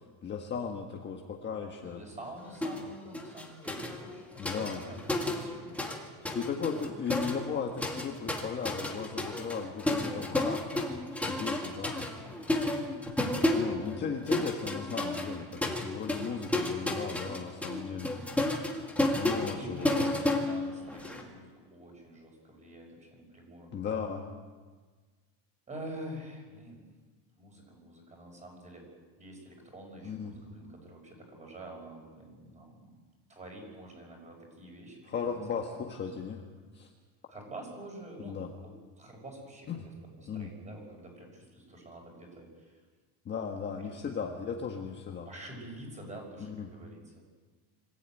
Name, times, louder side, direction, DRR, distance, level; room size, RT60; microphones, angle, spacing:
voice 1, 0.2-2.0 4.4-4.8 6.3-10.9 11.2-12.1 13.2-18.1 19.1-20.1 23.7-24.3 30.0-30.3 35.1-36.4 36.7-36.9 38.2-38.5 39.7-39.9 40.3-40.5 43.2-45.3 46.4-46.7, left 6 dB, 25° left, 1 dB, 1.4 m, -36 dB
voice 2, 1.8-6.4 11.6-12.2 12.4-12.8 17.5-17.9 19.5-23.7 25.7-26.8 27.4-28.9 29.2-33.0 33.3-35.4 35.7-36.3 37.3-39.7 40.1-42.8 43.8-43.9 45.3-47.1, right 1 dB, 15° right, 1 dB, 5.8 m, -47 dB
sound 1, 2.6-2.9 3.1-6.0 6.2-21.2, left 1 dB, 5° left, 2.1 m, -32 dB
25.5 x 15.0 x 9.1 m, 1.4 s
cardioid pair, 180°, 45 cm